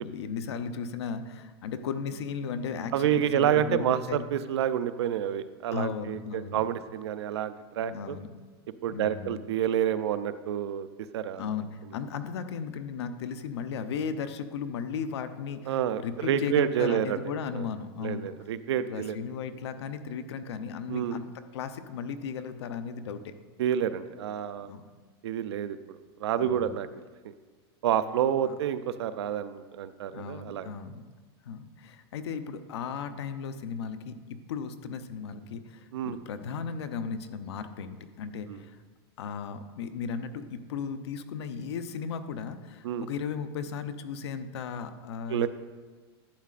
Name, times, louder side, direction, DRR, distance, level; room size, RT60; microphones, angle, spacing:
voice 1, 0.0-4.2 5.7-6.6 7.8-8.4 8.9-9.4 11.4-18.3 18.9-23.3 24.6-24.8 26.4-26.8 28.4-28.5 30.1-31.0 31.4-38.8 39.2-45.5, left 6 dB, 85° left, 10 dB, 0.7 m, -36 dB
voice 2, 2.9-8.2 8.8-10.9 11.1-11.4 15.7-17.2 17.5-17.7 18.0-19.2 20.9-21.2 23.6-24.7 25.2-26.9 27.2-27.3 27.8-30.7 35.9-36.2 38.5-38.6 42.8-43.1 45.3-45.5, right 10 dB, 90° right, 12 dB, 0.5 m, -29 dB
11.5 x 8.3 x 2.5 m, 1.4 s
supercardioid pair, 160°, 14 cm